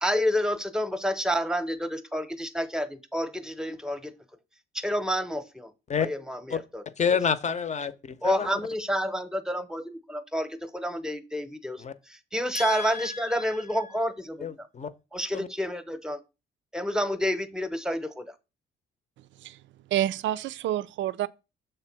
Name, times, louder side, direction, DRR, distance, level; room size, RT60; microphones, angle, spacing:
voice 1, 0.0-4.1 4.7-5.7 6.0-6.8 8.2-14.7 15.1-16.2 16.7-18.3, equal, 5° right, 0.9 m, -29 dB
voice 2, 7.0-8.6 11.8-11.9 12.5-13.6 14.4-14.9 15.3-15.5, left 7 dB, 35° left, 0.7 m, -29 dB
voice 3, 19.9-21.3, right 12 dB, 70° right, 0.5 m, -28 dB
6.8 x 3.3 x 5.9 m
cardioid pair, 90°, 20 cm